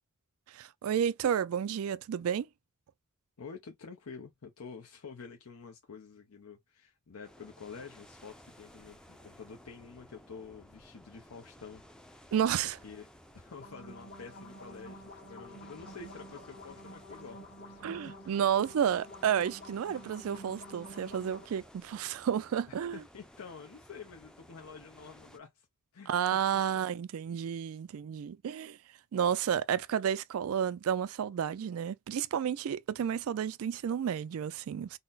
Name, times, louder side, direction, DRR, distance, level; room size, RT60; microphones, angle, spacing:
voice 1, 0.5-2.5 12.3-12.8 17.8-23.0 26.1-28.8 29.1-35.0, right 8 dB, 70° right, 0.3 m, -31 dB
voice 2, 3.4-11.8 12.6-13.1 13.3-18.1 22.7-25.7 25.9-26.6, left 5 dB, 75° left, 0.7 m, -48 dB
sound 1, 7.2-25.4, equal, 5° left, 0.5 m, -56 dB
sound 2, 13.5-21.4, equal, 45° left, 1.5 m, -49 dB
4.0 x 2.1 x 3.9 m
head